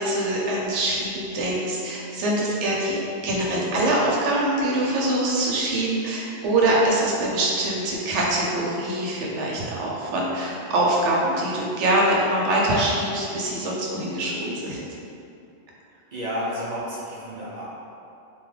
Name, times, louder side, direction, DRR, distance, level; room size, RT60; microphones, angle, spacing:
voice 1, 0.0-14.8, right 1 dB, 75° right, -3 dB, 0.9 m, -24 dB
voice 2, 16.1-17.6, equal, 55° right, -9 dB, 0.5 m, -31 dB
2.8 x 2.3 x 3.1 m, 2.6 s
omnidirectional pair, 1.3 m